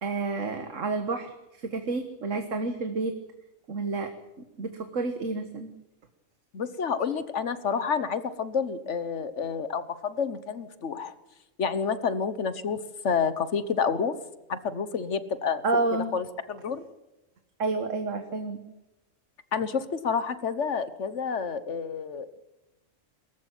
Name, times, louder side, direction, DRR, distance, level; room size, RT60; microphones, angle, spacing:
voice 1, 0.0-3.2 3.7-4.1 4.6-5.7 15.6-16.1 17.6-18.6, right 3 dB, 80° right, 7 dB, 1.8 m, -30 dB
voice 2, 6.5-11.1 11.6-12.8 13.0-14.1 14.5-15.8 16.1-16.8 19.5-22.4, left 6 dB, 65° left, 13 dB, 1.5 m, -29 dB
22.5 x 14.5 x 9.2 m, 0.98 s
omnidirectional pair, 1.3 m